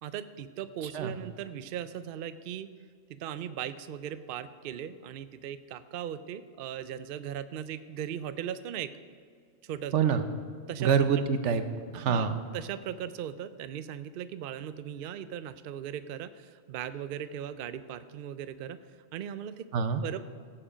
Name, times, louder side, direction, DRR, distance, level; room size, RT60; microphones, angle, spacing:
voice 1, 0.0-2.7 3.1-8.9 9.6-9.9 10.7-10.9 11.9-12.3 12.5-18.8 19.1-20.2, right 9 dB, 60° right, 13 dB, 0.6 m, -38 dB
voice 2, 0.8-1.2 9.9-10.2 10.8-11.6 11.9-12.4 19.7-20.0, right 7 dB, 85° right, 10 dB, 1.1 m, -26 dB
15.5 x 7.7 x 5.0 m, 2.1 s
omnidirectional pair, 1.2 m